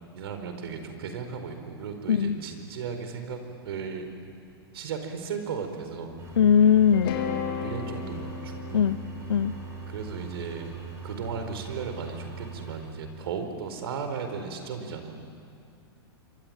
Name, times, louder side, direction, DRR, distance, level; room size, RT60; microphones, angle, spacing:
voice 1, 0.1-4.1 4.7-6.3 7.6-8.9 9.9-10.7 11.0-15.2, right 5 dB, 70° right, 7 dB, 4.5 m, -36 dB
sound 1, 6.2-12.8, right 6 dB, 20° right, 6.7 m, -41 dB
voice 2, 6.4-7.2 8.7-9.0 9.3-9.5, left 8 dB, 80° left, 20 dB, 0.7 m, -20 dB
sound 2, 6.9-11.1, left 8 dB, 60° left, 3.8 m, -35 dB
27.5 x 24.0 x 9.0 m, 2.4 s
hypercardioid pair, 110°, 13 cm